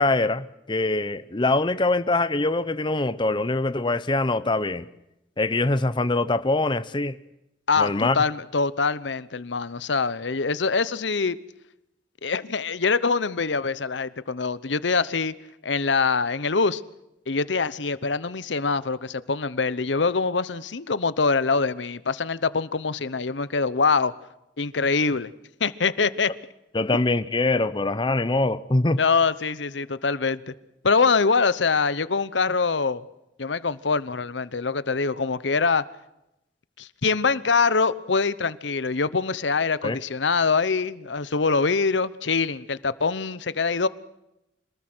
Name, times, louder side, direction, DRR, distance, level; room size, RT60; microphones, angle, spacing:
voice 1, 0.0-4.8 5.4-7.2 7.8-8.2 26.7-29.0 39.8-40.0, left 2 dB, 25° left, 0.8 m, -23 dB
voice 2, 7.7-11.4 12.2-15.3 15.6-16.8 17.3-24.1 24.6-25.3 25.6-26.3 29.0-30.5 30.8-33.0 33.4-35.8 36.8-43.9, left 4 dB, 85° left, 0.9 m, -24 dB
26.0 x 20.0 x 6.2 m
head